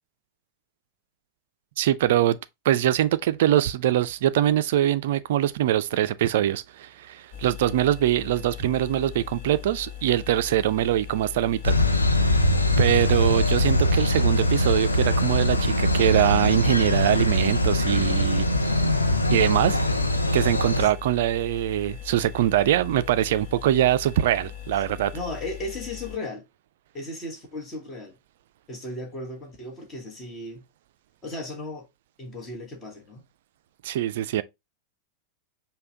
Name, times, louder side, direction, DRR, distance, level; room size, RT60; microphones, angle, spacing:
voice 1, 1.8-2.4 2.7-11.7 12.8-18.5 19.3-19.8 20.3-25.1 33.8-34.4, right 12 dB, 55° right, 0.3 m, -23 dB
sound 1, 7.3-26.2, left 10 dB, 45° left, 0.9 m, -40 dB
sound 2, 11.6-20.9, left 1 dB, 80° left, 0.5 m, -22 dB
voice 2, 25.1-26.4 26.9-28.1 28.7-30.6 31.2-31.9 32.2-33.2, left 2 dB, 25° left, 1.3 m, -35 dB
5.4 x 2.2 x 3.6 m
figure-of-eight pair, 90°, 0 cm